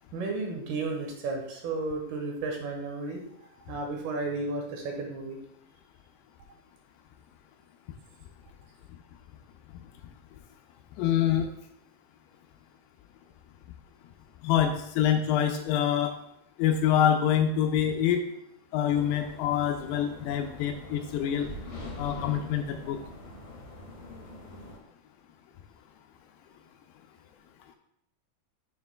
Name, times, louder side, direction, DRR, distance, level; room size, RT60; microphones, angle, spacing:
voice 1, 0.1-3.2 3.6-5.4, right 3 dB, 70° right, 1 dB, 2.9 m, -33 dB
voice 2, 11.0-11.5 14.4-16.1 16.6-18.2 18.7-21.5 22.0-23.0, left 9 dB, 80° left, 4 dB, 2.4 m, -25 dB
sound 1, 18.9-24.8, left 1 dB, 50° left, 2.7 m, -43 dB
9.4 x 7.2 x 2.2 m, 0.78 s
omnidirectional pair, 4.9 m